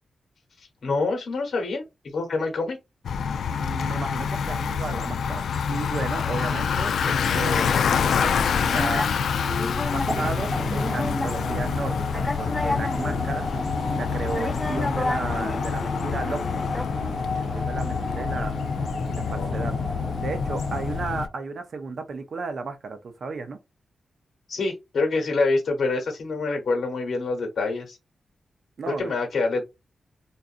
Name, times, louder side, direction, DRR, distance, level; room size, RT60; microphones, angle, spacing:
voice 1, 0.6-1.8 2.1-2.8 6.4-6.5 19.3-19.7 24.5-28.0 28.9-29.6, left 3 dB, 65° left, 1.0 m, -26 dB
Bicycle, 3.0-21.3, left 6 dB, 85° left, 0.3 m, -27 dB
voice 2, 3.5-9.1 9.9-13.5 13.9-16.4 17.4-18.6 19.1-19.7 20.2-23.6 28.8-29.1, right 4 dB, 55° right, 0.5 m, -34 dB
sound 1, 8.2-16.8, left 2 dB, 15° left, 0.5 m, -33 dB
sound 2, 10.1-21.4, left 1 dB, 30° right, 0.9 m, -33 dB
3.9 x 2.4 x 2.5 m
wide cardioid pair, 145°, 0 cm